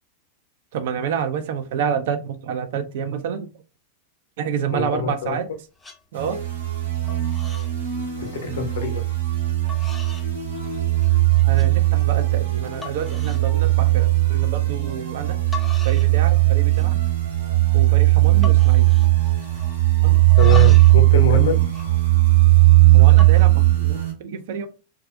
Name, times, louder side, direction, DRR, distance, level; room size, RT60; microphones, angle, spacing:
voice 1, 0.7-3.5 4.4-5.5 6.1-6.4 11.4-15.4 15.8-17.0 17.7-18.9 20.0-20.2 21.3-21.6 22.9-24.7, right 7 dB, 55° right, 0.4 m, -28 dB
voice 2, 4.7-5.4 8.2-9.1 20.4-21.6, left 5 dB, 60° left, 0.6 m, -25 dB
sound 1, 5.1-5.5 5.8-6.0 6.4-6.8 7.1-7.7 8.0-8.4 9.1-9.2 9.7-10.3 10.7-11.2 11.5-11.7 12.2-12.3 12.8-13.5 13.8-14.1 15.2-15.3 15.5-16.2 16.4-17.0 17.3-17.4 17.7-18.0 18.4-19.8 20.1-21.0 21.3-22.6 23.1-23.4, left 4 dB, 10° left, 0.5 m, -39 dB
sound 2, 6.1-24.1, right 18 dB, 75° right, 1.0 m, -17 dB
2.4 x 2.2 x 2.4 m
figure-of-eight pair, 90°, 0 cm